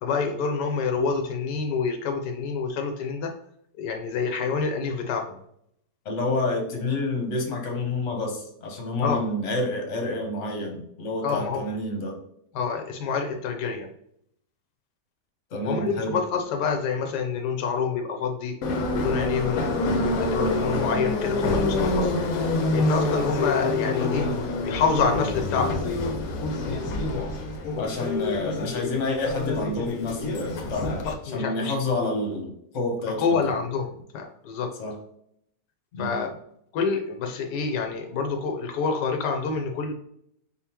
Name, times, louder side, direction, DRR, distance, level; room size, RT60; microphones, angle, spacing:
voice 1, 0.0-3.3 3.8-5.4 9.0-9.3 11.2-11.6 12.5-13.9 15.7-19.7 20.0-22.2 22.7-24.3 24.6-25.9 31.3-31.7 33.2-34.7 36.0-36.4 36.7-39.9, left 5 dB, 85° left, 4 dB, 1.2 m, -27 dB
voice 2, 6.0-12.1 15.5-16.2 27.8-31.0 31.3-33.5 34.8-34.9 35.9-36.2, left 2 dB, 50° left, 2 dB, 1.2 m, -29 dB
Subway metro underground, 18.6-31.1, left 2 dB, 65° left, 1.1 m, -26 dB
4.3 x 3.6 x 2.9 m, 0.72 s
omnidirectional pair, 1.8 m